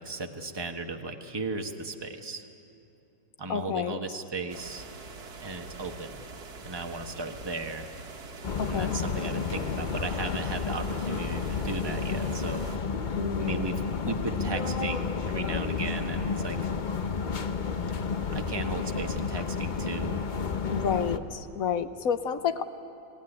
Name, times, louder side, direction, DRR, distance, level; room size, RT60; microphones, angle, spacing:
voice 1, 0.0-2.4 3.4-4.9 5.4-6.2 6.6-7.9 8.7-12.6 13.4-16.7 18.3-20.2, right 3 dB, 15° right, 4 dB, 1.1 m, -36 dB
voice 2, 3.5-4.0 8.6-8.9 13.2-13.7 20.7-22.7, left 7 dB, 55° left, 10 dB, 1.1 m, -30 dB
sound 1, 4.5-12.8, right 3 dB, 55° right, 2.0 m, -44 dB
sound 2, 8.4-21.2, left 5 dB, 75° left, 0.4 m, -31 dB
27.0 x 18.5 x 10.0 m, 2.8 s
omnidirectional pair, 2.1 m